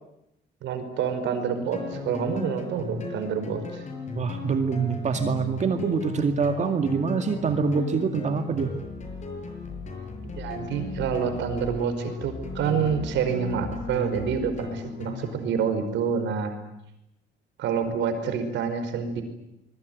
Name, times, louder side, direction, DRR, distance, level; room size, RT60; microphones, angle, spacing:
voice 1, 0.6-3.8 10.2-16.5 17.6-19.2, right 6 dB, 80° right, 8 dB, 5.2 m, -27 dB
sound 1, 1.7-15.4, left 4 dB, 40° left, 6.4 m, -36 dB
voice 2, 4.2-8.7, right 5 dB, 40° right, 7 dB, 2.2 m, -25 dB
26.0 x 22.5 x 9.5 m, 0.85 s
cardioid pair, 135°, 19 cm